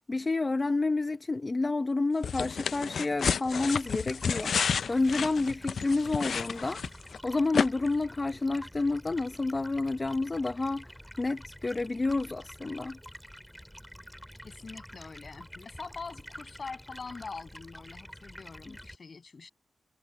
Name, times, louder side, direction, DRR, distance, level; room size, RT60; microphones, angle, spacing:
voice 1, 0.0-6.8 7.2-13.0, left 3 dB, 25° left, 0.7 m, -29 dB
sound 1, 2.2-7.2 7.5-7.7, left 6 dB, 70° left, 0.4 m, -30 dB
Stream, 3.5-18.9, equal, ahead, 5.0 m, -48 dB
voice 2, 14.4-19.5, left 4 dB, 45° left, 7.8 m, -44 dB
wide cardioid pair, 150°, 0 cm